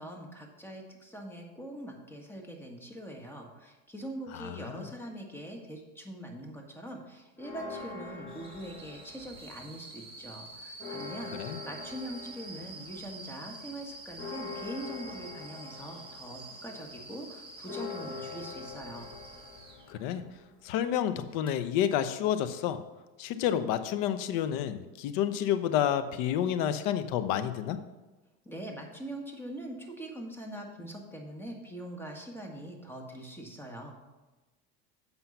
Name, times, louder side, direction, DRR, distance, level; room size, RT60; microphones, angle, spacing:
voice 1, 0.0-19.1 28.4-34.0, right 1 dB, 5° left, 1 dB, 1.7 m, -42 dB
voice 2, 4.3-4.9 11.3-11.6 19.9-20.2 20.6-22.8 23.2-27.8, left 10 dB, 65° left, 11 dB, 0.8 m, -29 dB
Church bell, 7.4-9.8 10.1-10.2 10.5-20.6, left 4 dB, 40° left, 1.6 m, -45 dB
sound 1, 8.3-19.9 21.3-21.5, right 3 dB, 15° right, 1.7 m, -48 dB
7.9 x 5.6 x 5.7 m, 1.2 s
supercardioid pair, 105°, 34 cm